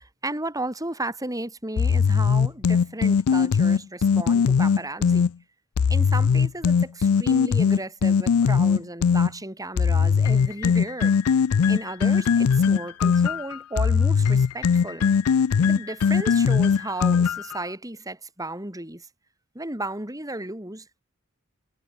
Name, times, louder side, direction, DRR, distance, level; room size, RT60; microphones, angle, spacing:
voice 1, 0.0-5.3 5.9-11.1 11.7-15.1 15.6-19.1 19.5-21.0, right 2 dB, 15° right, 5.6 m, -34 dB
sound 1, 1.8-5.3 5.8-9.3 9.8-17.6, left 6 dB, 75° left, 0.4 m, -20 dB
head